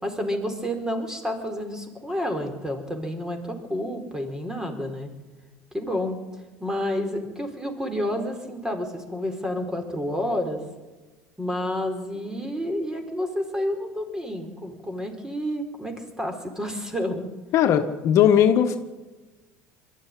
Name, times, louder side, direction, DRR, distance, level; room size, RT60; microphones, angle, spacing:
voice 1, 0.0-5.1 5.7-6.2 6.6-10.6 11.4-17.3, left 1 dB, 10° right, 5 dB, 4.5 m, -29 dB
voice 2, 17.5-18.8, left 9 dB, 55° left, 6 dB, 1.5 m, -18 dB
21.5 x 13.5 x 10.0 m, 1.2 s
supercardioid pair, 105°, 6 cm